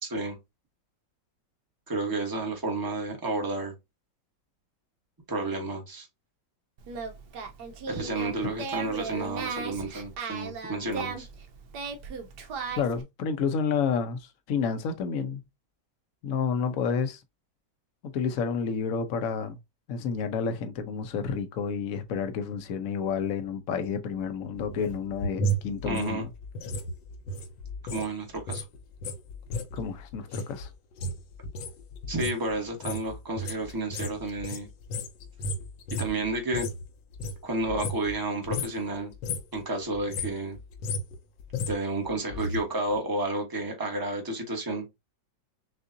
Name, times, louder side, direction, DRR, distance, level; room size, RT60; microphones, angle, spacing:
voice 1, 0.0-0.4 1.9-3.7 5.3-6.1 7.9-11.3 25.8-26.3 27.8-28.6 32.1-34.7 36.0-36.7 37.4-39.1 39.5-40.6 41.7-44.8, right 2 dB, 15° right, 1.0 m, -31 dB
Singing, 6.8-13.0, right 5 dB, 70° right, 1.3 m, -37 dB
voice 2, 12.7-15.4 16.2-17.2 18.0-19.6 19.9-26.3 29.7-30.7, left 6 dB, 60° left, 1.0 m, -30 dB
sound 1, 24.5-28.1 28.3-36.8 37.1-38.2 38.4-38.8 39.1-39.6 39.9-42.6 42.9-43.0, equal, 80° left, 1.4 m, -34 dB
6.5 x 2.5 x 2.6 m
omnidirectional pair, 2.0 m